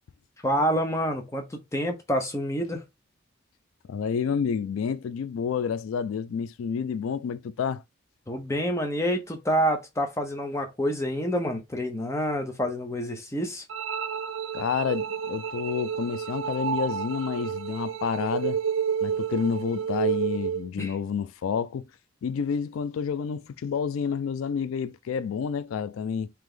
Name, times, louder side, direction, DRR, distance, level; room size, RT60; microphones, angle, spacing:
voice 1, 0.4-2.8 8.3-13.6 20.8-20.9, equal, 15° left, 0.7 m, -27 dB
voice 2, 3.9-7.8 14.5-18.6 19.0-21.8 22.2-26.3, left 6 dB, 90° left, 0.3 m, -29 dB
sound 1, 13.7-20.7, right 7 dB, 75° right, 0.4 m, -30 dB
3.3 x 2.9 x 3.7 m
head